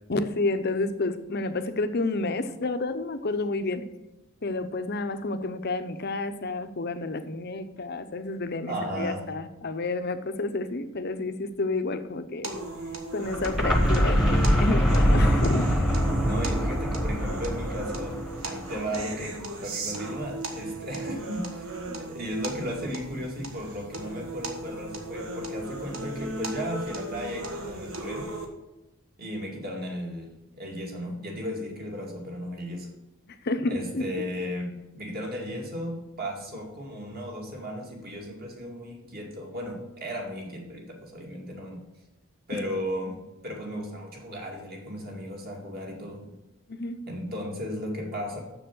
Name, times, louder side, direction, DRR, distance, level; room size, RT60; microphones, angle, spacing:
voice 1, 0.1-3.9 4.4-12.6 13.1-15.7 33.3-34.3 46.7-47.0, left 2 dB, 45° left, 10 dB, 0.7 m, -30 dB
voice 2, 8.7-9.3 16.3-28.3 29.2-32.9 33.7-41.8 42.5-46.4 47.1-48.4, equal, 45° right, 0 dB, 2.3 m, -35 dB
sound 1, 12.4-28.5, right 2 dB, 70° right, 1.6 m, -37 dB
sound 2, 13.3-19.1, equal, ahead, 1.2 m, -24 dB
7.1 x 6.9 x 7.6 m, 1.0 s
head